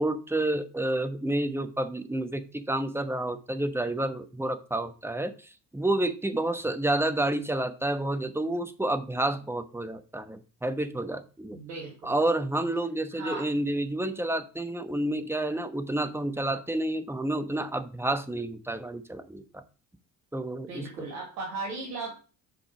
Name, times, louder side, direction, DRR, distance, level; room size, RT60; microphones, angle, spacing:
voice 1, 0.0-11.6 12.0-19.6 20.3-20.9, right 1 dB, 5° right, 9 dB, 1.0 m, -29 dB
voice 2, 11.5-12.1 13.1-13.5 20.5-22.1, right 3 dB, 75° right, -3 dB, 2.2 m, -37 dB
7.4 x 5.2 x 4.9 m, 0.38 s
hypercardioid pair, 55°, 48 cm